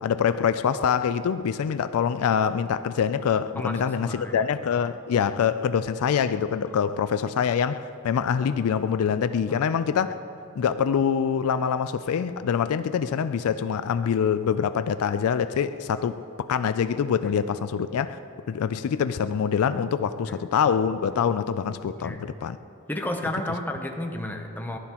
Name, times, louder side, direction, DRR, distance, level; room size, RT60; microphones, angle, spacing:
voice 1, 0.0-10.1 10.6-18.2 18.5-22.6, left 7 dB, 75° left, 13 dB, 0.3 m, -25 dB
voice 2, 3.6-4.4 9.5-9.6 20.3-20.4 21.9-22.2 22.9-24.8, left 1 dB, 10° left, 3 dB, 0.7 m, -32 dB
14.5 x 11.5 x 2.9 m, 2.6 s
head